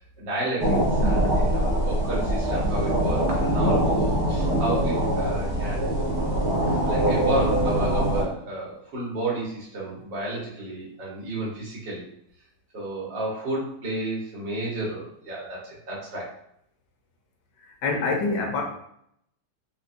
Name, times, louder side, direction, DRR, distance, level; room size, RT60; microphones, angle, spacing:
voice 1, 0.2-5.9 6.8-12.1 12.7-16.3, right 1 dB, 75° right, -6 dB, 1.9 m, -32 dB
sound 1, 0.6-8.2, right 1 dB, 50° right, 0.9 m, -23 dB
voice 2, 17.7-18.6, left 3 dB, 75° left, 1 dB, 1.3 m, -26 dB
4.4 x 2.2 x 2.5 m, 0.71 s
omnidirectional pair, 1.9 m